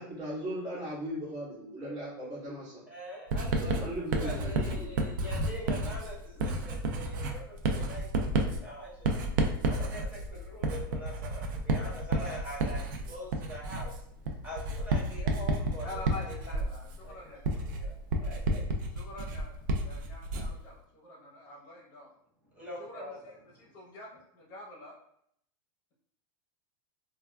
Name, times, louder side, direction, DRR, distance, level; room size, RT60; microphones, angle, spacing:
voice 1, 0.0-2.8 3.5-4.9 6.4-6.5, equal, 30° right, -9 dB, 1.4 m, -38 dB
voice 2, 2.9-9.1 9.4-16.2 17.0-17.2 17.7-18.9 20.0-20.1 22.5-23.2, equal, 15° right, -6 dB, 0.7 m, -44 dB
Writing, 3.3-20.6, right 2 dB, 60° right, 0.4 m, -31 dB
voice 3, 15.8-17.6 18.9-19.5 19.8-22.1 22.8-24.9, left 2 dB, 30° left, -3 dB, 0.9 m, -46 dB
3.3 x 2.3 x 2.2 m, 0.71 s
supercardioid pair, 165°, 12 cm